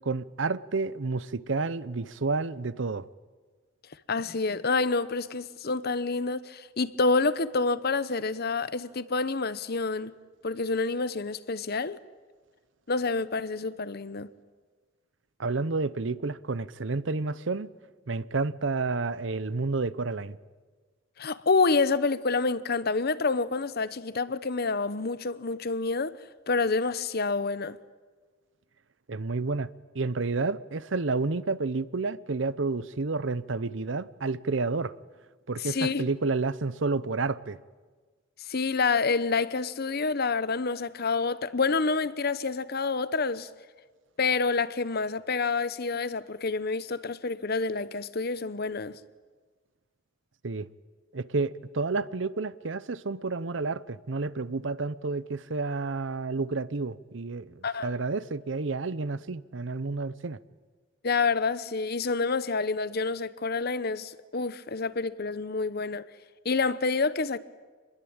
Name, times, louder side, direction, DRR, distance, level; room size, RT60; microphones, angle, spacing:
voice 1, 0.1-3.1 15.4-17.7 18.1-20.4 29.1-29.7 29.9-34.9 35.5-37.6 50.4-50.7 51.1-60.4, right 3 dB, 70° right, 0.8 m, -30 dB
voice 2, 4.1-10.1 10.4-12.0 12.9-14.3 21.2-26.1 26.5-27.8 35.6-36.0 38.5-43.5 44.2-49.0 57.6-57.9 61.0-66.0 66.4-67.4, left 4 dB, 55° left, 0.9 m, -28 dB
26.5 x 21.0 x 8.8 m
head